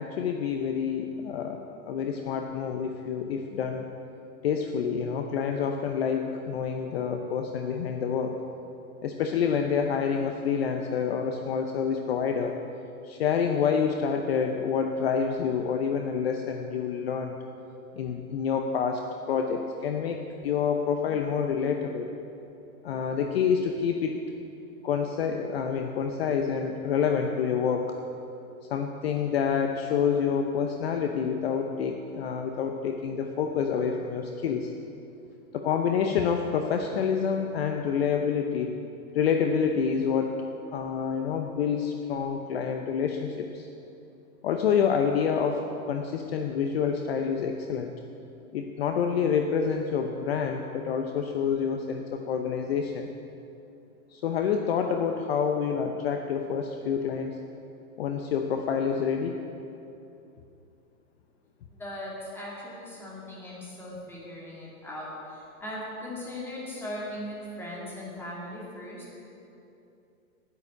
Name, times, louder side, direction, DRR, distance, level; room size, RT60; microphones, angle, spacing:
voice 1, 0.0-3.9 4.4-8.3 9.0-12.6 13.0-17.3 17.9-19.0 19.3-22.1 22.8-24.2 24.8-28.0 28.7-34.7 35.5-38.8 39.1-40.4 40.7-43.7 44.4-47.9 48.5-53.1 54.1-57.4 58.0-59.3, left 6 dB, 45° left, 4 dB, 0.8 m, -27 dB
voice 2, 61.7-69.1, left 1 dB, 5° left, -5 dB, 2.4 m, -39 dB
10.0 x 9.6 x 9.4 m, 2.8 s
hypercardioid pair, 160°, 45 cm